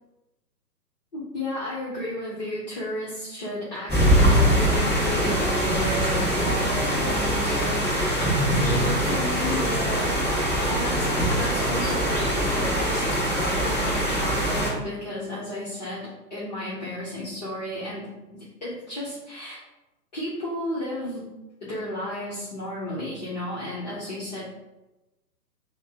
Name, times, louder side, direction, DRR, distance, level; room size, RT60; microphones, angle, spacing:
voice 1, 1.1-7.8 8.6-10.1 10.7-19.6 20.1-21.3 21.6-24.5, left 1 dB, 25° left, -9 dB, 0.8 m, -33 dB
sound 1, 3.9-14.7, equal, ahead, 1.2 m, -23 dB
5.6 x 2.1 x 3.4 m, 1.0 s
figure-of-eight pair, 125°, 50 cm